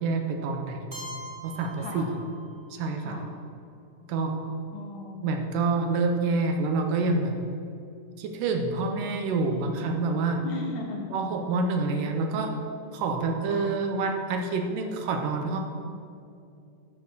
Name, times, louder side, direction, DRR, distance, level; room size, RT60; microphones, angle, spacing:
voice 1, 0.0-1.0 1.4-2.2 2.7-3.2 4.1-4.4 5.2-7.4 8.2-10.5 11.1-12.6 12.9-15.6, right 3 dB, 75° right, 4 dB, 2.3 m, -27 dB
Keyboard (musical), 0.9-2.8, right 1 dB, 20° right, 1.7 m, -43 dB
voice 2, 1.8-2.1 3.0-3.3 4.7-5.3 10.4-11.1 13.5-13.8, left 3 dB, 70° left, 1 dB, 1.8 m, -37 dB
11.0 x 5.9 x 6.7 m, 2.5 s
omnidirectional pair, 4.1 m